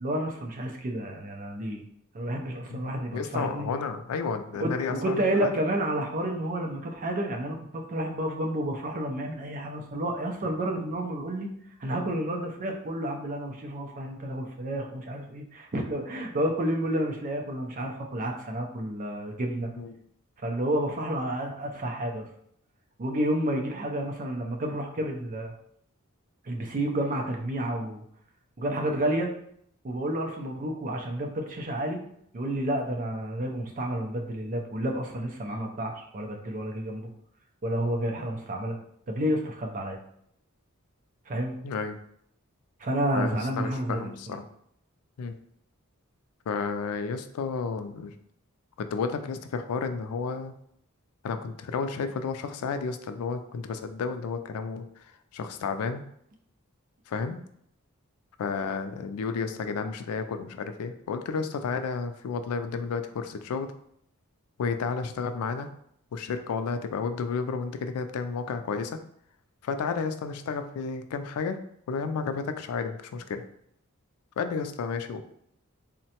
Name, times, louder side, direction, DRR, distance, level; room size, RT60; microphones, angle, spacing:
voice 1, 0.0-1.8 2.1-3.7 4.6-11.5 11.8-19.7 20.4-22.3 23.0-25.5 26.4-28.0 28.6-29.3 29.8-32.0 32.3-37.1 37.6-38.8 39.1-40.0 41.3-41.6 42.8-44.4, right 1 dB, 40° right, 2 dB, 0.5 m, -30 dB
voice 2, 2.7-5.5 19.8-20.0 41.6-42.0 43.1-44.4 45.2-45.3 46.5-48.1 48.8-50.5 51.2-54.9 55.3-56.0 57.1-57.4 58.4-63.7 64.6-65.7 66.1-68.9 69.6-71.6 71.9-73.4 74.4-75.3, left 5 dB, 85° left, 8 dB, 0.3 m, -32 dB
3.7 x 2.1 x 2.8 m, 0.70 s
head